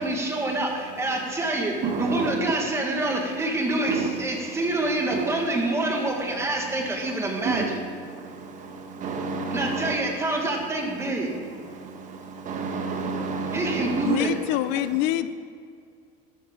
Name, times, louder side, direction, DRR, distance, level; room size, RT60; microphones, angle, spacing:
voice 1, 0.0-7.8 9.5-11.3 13.5-14.3, right 2 dB, 15° right, 1 dB, 1.9 m, -27 dB
voice 2, 1.8-2.3 3.9-4.1 5.1-5.2 7.4-7.7 9.0-9.9 12.5-14.2, right 4 dB, 40° right, 4 dB, 1.4 m, -28 dB
voice 3, 14.0-15.3, left 13 dB, 65° left, 13 dB, 0.6 m, -25 dB
12.5 x 12.5 x 3.9 m, 2.2 s
cardioid pair, 140°, 20 cm